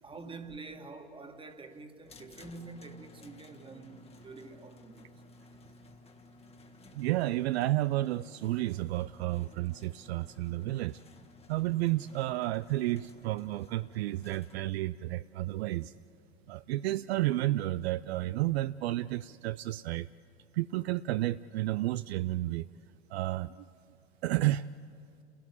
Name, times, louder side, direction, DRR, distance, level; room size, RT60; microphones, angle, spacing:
voice 1, 0.0-5.1, right 3 dB, 15° right, 1.8 m, -47 dB
sound 1, 2.1-14.5, left 2 dB, 20° left, 1.5 m, -55 dB
voice 2, 6.9-11.0 11.5-15.9 16.5-20.1 20.5-22.7 23.1-23.6 24.2-24.6, right 16 dB, 65° right, 0.5 m, -31 dB
29.0 x 17.0 x 8.3 m
hypercardioid pair, 100°, 34 cm